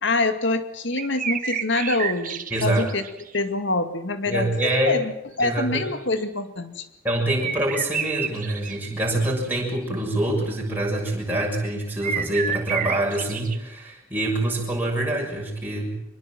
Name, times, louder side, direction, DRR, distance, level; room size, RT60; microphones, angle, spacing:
voice 1, 0.0-3.0 3.3-4.5 4.9-5.1 5.4-6.9, left 2 dB, 60° left, 9 dB, 2.2 m, -25 dB
sound 1, 0.9-3.4 6.2-6.3 7.4-8.8 9.2-9.9 10.1-10.2 12.0-13.6, right 7 dB, 40° right, 1.7 m, -30 dB
voice 2, 2.5-2.9 4.3-5.0 5.4-5.9 7.0-15.9, right 1 dB, 10° right, -3 dB, 6.6 m, -25 dB
24.5 x 22.5 x 7.7 m, 0.86 s
head